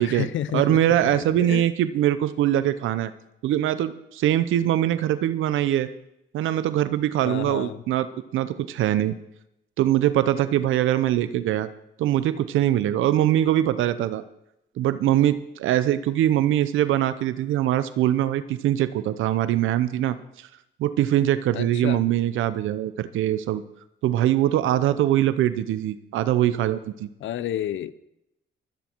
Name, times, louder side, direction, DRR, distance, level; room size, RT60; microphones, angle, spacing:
voice 1, 0.0-1.6 7.2-7.8 21.5-22.0 27.2-27.9, left 11 dB, 75° left, 16 dB, 0.7 m, -31 dB
voice 2, 0.5-3.1 3.4-5.9 6.3-9.2 9.8-11.7 12.0-14.2 14.8-20.5 20.8-23.6 24.0-27.1, right 12 dB, 85° right, 14 dB, 0.8 m, -22 dB
23.5 x 9.3 x 4.6 m, 0.83 s
cardioid pair, 90°, 20 cm